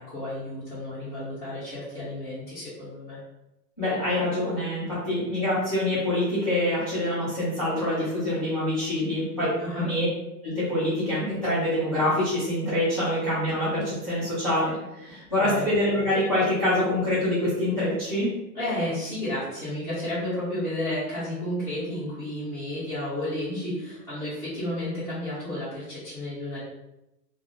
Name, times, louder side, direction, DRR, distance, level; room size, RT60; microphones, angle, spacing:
voice 1, 0.0-3.2 9.6-9.9 15.4-15.7 18.5-26.6, left 1 dB, 5° left, -14 dB, 0.7 m, -32 dB
voice 2, 3.8-9.5 9.8-10.1 10.4-18.3, left 1 dB, 25° left, -13 dB, 0.4 m, -25 dB
2.3 x 2.3 x 3.2 m, 0.92 s
hypercardioid pair, 170°, 49 cm